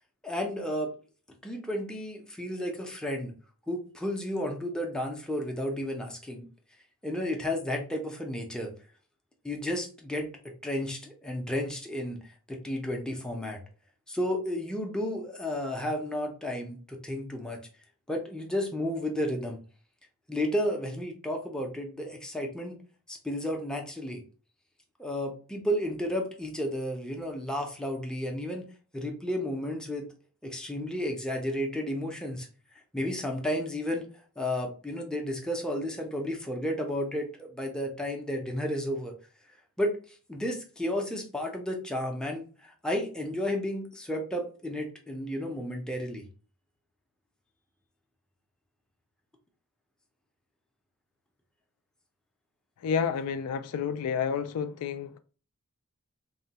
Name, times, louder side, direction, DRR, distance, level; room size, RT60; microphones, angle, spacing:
voice 1, 0.2-0.9 1.4-3.3 3.7-6.5 7.0-8.7 9.4-10.3 10.6-12.2 12.5-13.6 14.1-17.6 18.1-19.6 20.3-22.8 23.1-24.2 25.0-28.6 28.9-30.1 30.4-32.5 32.9-34.1 34.4-39.1 39.8-40.0 40.3-46.2, left 1 dB, 5° left, 0.5 m, -32 dB
voice 2, 52.8-55.2, left 6 dB, 85° left, 0.3 m, -30 dB
3.0 x 2.1 x 2.7 m
head